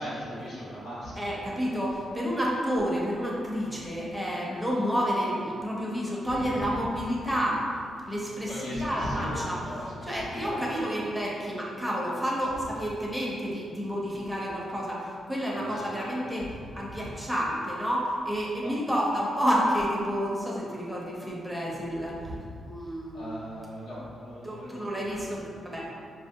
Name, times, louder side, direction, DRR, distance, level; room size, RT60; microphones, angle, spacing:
voice 1, 0.0-1.4 1.6-1.9 6.4-6.5 8.5-10.9 15.5-17.0 18.6-18.7 22.2-22.5 23.1-24.9, equal, 80° left, -10 dB, 1.5 m, -39 dB
voice 2, 1.2-7.6 8.1-9.6 10.0-22.2 22.6-23.3 24.4-25.9, equal, 5° right, -5 dB, 0.7 m, -30 dB
4.9 x 2.8 x 2.2 m, 2.3 s
cardioid pair, 90°, 0 cm